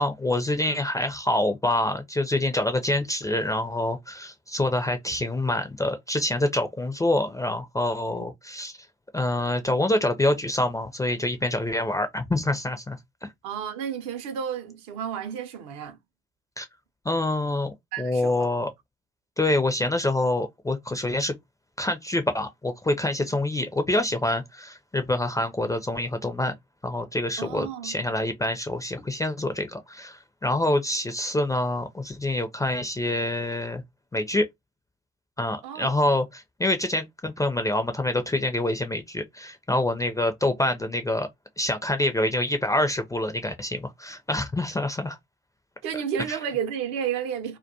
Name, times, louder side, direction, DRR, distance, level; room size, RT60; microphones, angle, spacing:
voice 1, 0.0-8.8 9.1-13.3 16.6-16.7 17.0-18.7 19.4-21.4 21.8-26.5 26.8-33.8 34.1-34.5 35.4-41.3 41.6-45.2 45.9-46.4, left 1 dB, 10° left, 0.4 m, -26 dB
voice 2, 13.4-16.0 17.9-18.5 23.2-23.3 27.4-28.0 35.6-35.9 45.8-47.6, right 8 dB, 65° right, 0.7 m, -32 dB
2.3 x 2.2 x 2.6 m
hypercardioid pair, 60°, 34 cm